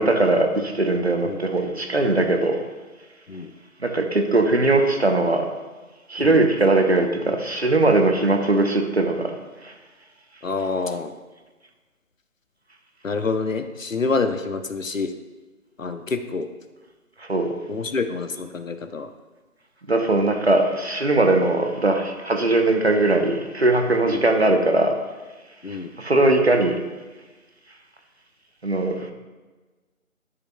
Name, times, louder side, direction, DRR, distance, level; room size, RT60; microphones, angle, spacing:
voice 1, 0.0-2.6 3.8-5.5 6.1-9.3 9.6-9.7 17.2-17.5 19.9-24.9 25.7-26.8 28.6-29.1, right 2 dB, 50° right, 5 dB, 0.8 m, -20 dB
voice 2, 10.4-11.1 13.0-15.1 15.8-16.5 17.7-19.1 24.1-24.2 25.6-25.9, left 4 dB, 65° left, 9 dB, 0.7 m, -27 dB
10.5 x 6.7 x 2.2 m, 1.3 s
figure-of-eight pair, 165°, 42 cm